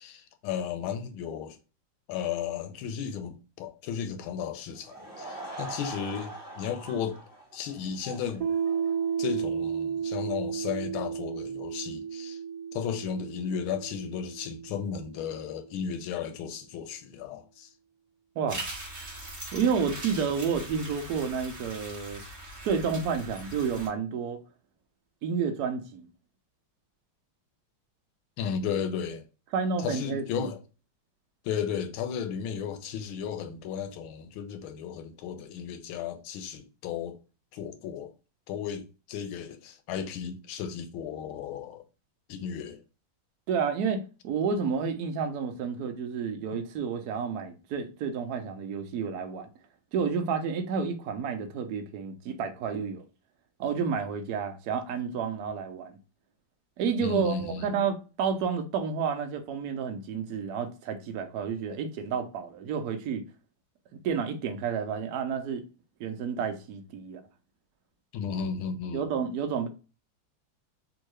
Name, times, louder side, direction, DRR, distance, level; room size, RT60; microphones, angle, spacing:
voice 1, 0.0-1.6 2.1-7.2 7.5-8.5 9.2-12.4 12.7-17.7 28.4-29.2 29.8-30.6 31.4-37.2 37.5-38.1 38.5-41.8 42.3-42.8 57.0-57.7 68.1-69.1, left 7 dB, 80° left, 1.4 m, -34 dB
Laughter / Crowd, 4.7-9.2, right 2 dB, 10° left, 1.0 m, -43 dB
Piano, 8.4-15.7, right 7 dB, 60° right, 1.2 m, -33 dB
voice 2, 18.4-18.7 19.5-22.2 22.6-24.4 25.2-26.1 29.5-30.5 43.5-49.5 49.9-53.0 53.6-55.9 56.8-63.2 64.0-65.6 66.0-67.2 68.9-69.7, right 6 dB, 75° right, 0.8 m, -30 dB
sound 1, 18.5-23.9, right 1 dB, 25° right, 0.8 m, -41 dB
3.6 x 2.7 x 3.0 m
omnidirectional pair, 2.3 m